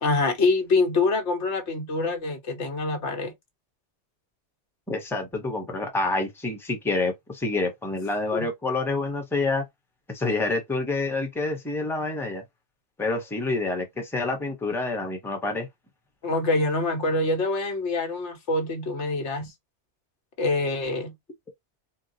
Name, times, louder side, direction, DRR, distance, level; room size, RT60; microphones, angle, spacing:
voice 1, 0.0-3.3 8.3-8.5 16.2-19.5 20.4-21.1, left 3 dB, 80° left, 1.3 m, -25 dB
voice 2, 4.9-9.6 10.1-12.4 13.0-15.7, left 3 dB, ahead, 0.9 m, -27 dB
3.8 x 2.3 x 2.7 m
omnidirectional pair, 1.2 m